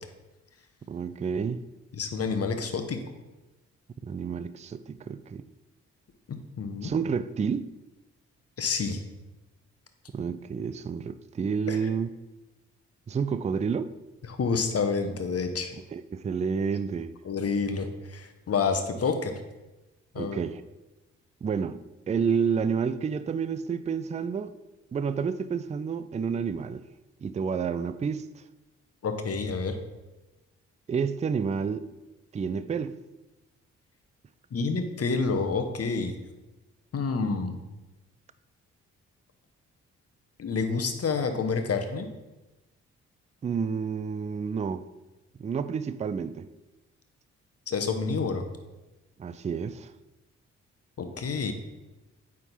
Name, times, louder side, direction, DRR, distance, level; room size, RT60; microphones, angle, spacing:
voice 1, 0.9-1.6 4.0-5.5 6.8-7.6 10.1-12.1 13.1-13.9 15.9-17.1 20.2-20.6 21.4-24.6 24.9-26.8 27.2-28.3 30.9-31.9 32.3-32.9 43.4-44.8 45.4-46.5 49.2-49.9, right 6 dB, 20° right, 0.4 m, -29 dB
voice 2, 1.9-3.0 6.3-6.9 8.6-9.0 11.7-11.8 14.3-15.7 17.2-19.4 20.1-20.4 29.0-29.8 34.5-36.1 36.9-37.6 40.4-42.1 47.7-48.4 51.0-51.5, left 4 dB, 45° left, 1.0 m, -28 dB
8.8 x 3.7 x 4.2 m
hypercardioid pair, 40°, 33 cm